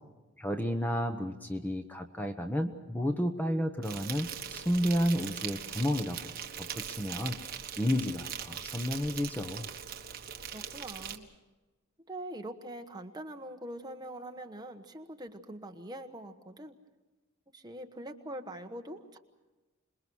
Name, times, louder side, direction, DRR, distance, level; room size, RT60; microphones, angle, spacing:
voice 1, 0.4-6.3 6.6-7.4 7.8-9.7, equal, 10° left, 6 dB, 1.0 m, -31 dB
Insect, 3.8-11.2, right 8 dB, 45° right, 1.5 m, -41 dB
voice 2, 10.5-11.3 12.0-16.8 17.5-19.2, right 1 dB, 20° right, 5 dB, 1.3 m, -43 dB
27.0 x 21.5 x 6.3 m, 1.1 s
head